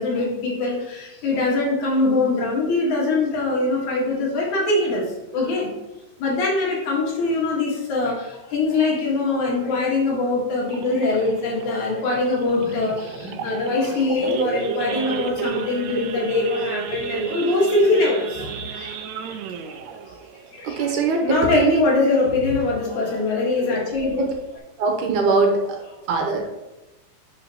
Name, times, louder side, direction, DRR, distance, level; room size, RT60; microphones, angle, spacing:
voice 1, 0.0-5.0 5.3-5.7 6.2-18.9 19.7-19.8 20.1-20.2 20.5-20.9 21.2-24.3, left 3 dB, 65° left, -3 dB, 2.8 m, -22 dB
Idling / Accelerating revving vroom / Sawing, 10.7-21.8 22.2-22.4 22.6-22.7 23.2-23.5 23.9-24.0 24.2-24.6, right 7 dB, 90° right, 1.6 m, -32 dB
voice 2, 20.6-21.2 21.5-21.8 24.2-24.3 24.8-25.6 26.1-26.4, right 4 dB, 75° right, 2 dB, 2.2 m, -21 dB
10.5 x 5.5 x 2.9 m, 1.0 s
omnidirectional pair, 3.9 m